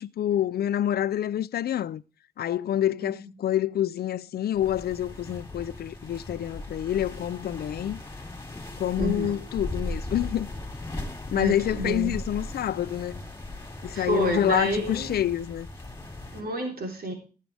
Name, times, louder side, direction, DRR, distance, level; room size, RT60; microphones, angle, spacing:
voice 1, 0.0-2.0 2.4-8.0 8.8-10.5 11.3-13.2 13.8-15.7, left 11 dB, 75° left, 0.5 m, -27 dB
sound 1, 4.5-16.4, left 2 dB, 15° left, 3.1 m, -38 dB
voice 2, 9.0-9.5 11.3-12.2 13.9-15.2 16.3-17.1, right 1 dB, 65° right, 3.7 m, -29 dB
17.0 x 7.5 x 3.4 m
cardioid pair, 100°, 16 cm